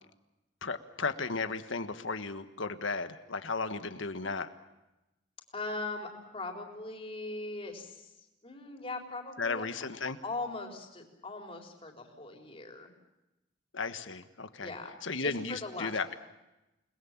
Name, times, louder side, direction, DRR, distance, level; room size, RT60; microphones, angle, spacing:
voice 1, 0.6-4.5 9.4-10.2 13.7-14.7 15.0-16.1, left 4 dB, 90° left, 10 dB, 1.5 m, -35 dB
voice 2, 5.5-8.1 8.4-9.7 10.2-12.9 14.6-16.2, left 2 dB, 30° left, 2 dB, 3.9 m, -40 dB
29.0 x 20.5 x 7.4 m, 0.97 s
head